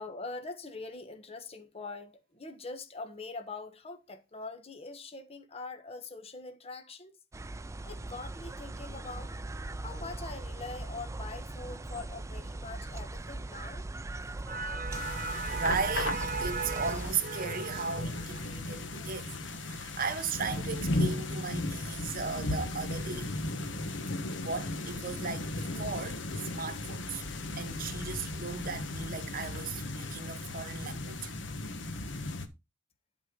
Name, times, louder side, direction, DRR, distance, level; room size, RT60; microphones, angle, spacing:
voice 1, 0.0-7.2 7.8-9.3 9.8-13.9, left 3 dB, 35° left, 1.2 m, -43 dB
sound 1, 7.3-17.1, right 2 dB, 15° right, 0.4 m, -40 dB
voice 2, 14.3-19.3 19.6-23.3 24.4-26.2 26.5-27.2 27.6-31.3, right 5 dB, 50° right, 1.2 m, -36 dB
sound 2, 14.9-32.5, left 2 dB, 70° left, 1.3 m, -36 dB
11.5 x 4.3 x 5.3 m
head